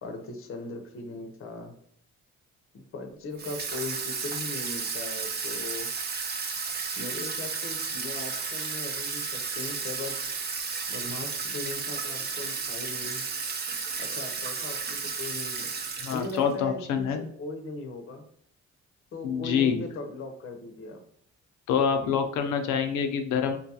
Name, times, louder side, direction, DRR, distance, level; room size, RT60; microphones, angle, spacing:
voice 1, 0.0-1.8 2.7-5.9 7.0-10.2 10.9-13.2 14.0-15.7 16.1-18.2 19.1-21.0, left 2 dB, 45° left, 4 dB, 0.6 m, -39 dB
Water tap faucet / Sink (filling or washing), 3.4-16.5, right 5 dB, 35° right, 0.5 m, -33 dB
voice 2, 16.0-17.2 19.2-19.8 21.7-23.6, left 7 dB, 90° left, 6 dB, 0.5 m, -26 dB
3.7 x 2.3 x 2.7 m, 0.64 s
cardioid pair, 90°, 30 cm